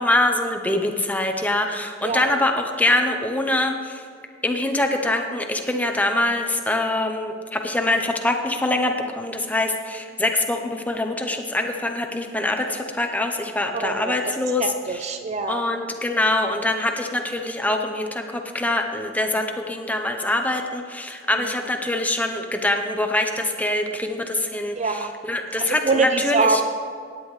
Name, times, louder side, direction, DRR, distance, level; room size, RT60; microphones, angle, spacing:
voice 1, 0.0-4.0 4.4-15.1 15.5-26.6, left 1 dB, 10° left, 4 dB, 0.7 m, -24 dB
voice 2, 13.7-14.3 14.6-15.6 21.3-21.5 24.8-25.1 25.6-26.6, right 4 dB, 35° right, 7 dB, 0.5 m, -24 dB
17.0 x 10.0 x 3.2 m, 2.2 s
head